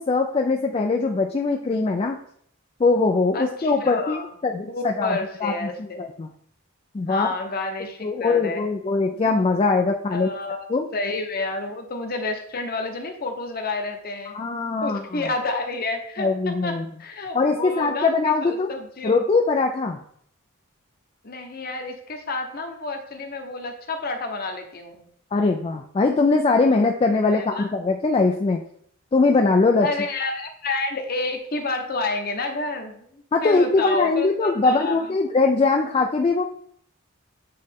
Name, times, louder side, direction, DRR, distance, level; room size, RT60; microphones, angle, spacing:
voice 1, 0.0-2.2 2.8-5.7 6.0-6.3 6.9-7.3 8.0-10.3 10.7-10.9 14.3-15.2 16.2-16.9 17.3-18.7 19.0-20.0 25.3-28.6 29.1-29.9 33.3-36.4, left 3 dB, 25° left, 3 dB, 0.3 m, -21 dB
voice 2, 3.3-4.3 4.7-6.1 7.1-8.7 10.1-10.7 10.9-14.3 14.8-19.2 21.2-25.1 27.3-27.7 29.8-35.0, left 3 dB, 45° left, 5 dB, 0.9 m, -30 dB
8.6 x 3.2 x 3.6 m, 0.66 s
head